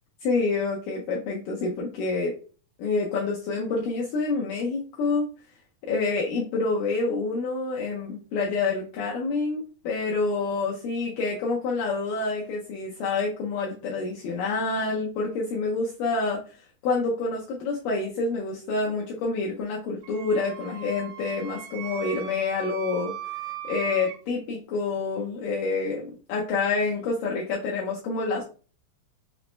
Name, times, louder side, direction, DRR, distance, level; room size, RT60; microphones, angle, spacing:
voice 1, 0.2-2.3 2.8-5.3 5.8-16.6 16.8-23.1 23.6-28.4, left 3 dB, 80° left, -2 dB, 2.2 m, -27 dB
Wind instrument woodwind instrument, 20.0-24.2, right 10 dB, 85° right, 1.7 m, -38 dB
5.9 x 2.0 x 3.1 m, 0.38 s
omnidirectional pair, 4.1 m